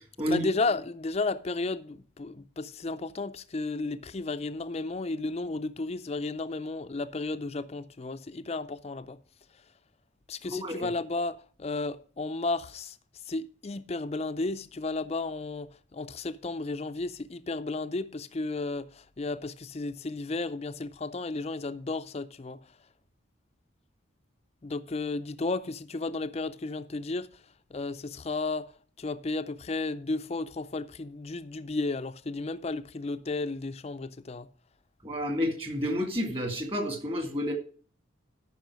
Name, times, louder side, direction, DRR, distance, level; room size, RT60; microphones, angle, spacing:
voice 1, 0.3-9.2 10.3-13.0 13.3-22.6 24.6-27.3 27.7-28.7 29.0-34.5, left 3 dB, 30° left, 0.4 m, -33 dB
voice 2, 10.5-10.9 35.0-37.5, equal, 30° right, 2.0 m, -30 dB
13.0 x 5.8 x 4.7 m
head